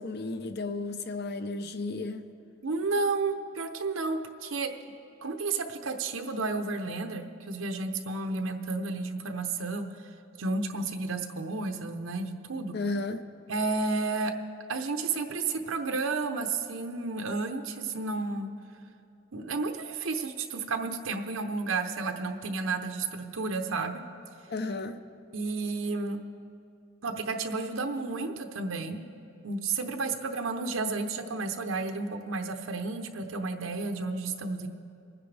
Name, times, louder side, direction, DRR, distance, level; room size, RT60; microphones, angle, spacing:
voice 1, 0.0-2.3 12.7-13.2 24.5-25.0, left 3 dB, 50° left, 0.6 m, -33 dB
voice 2, 2.6-4.7 5.2-9.9 10.4-12.8 13.5-14.3 14.7-18.5 19.3-24.0 25.3-26.2 27.0-29.0 29.4-34.7, right 3 dB, 90° right, 0.8 m, -32 dB
26.0 x 9.7 x 3.4 m
head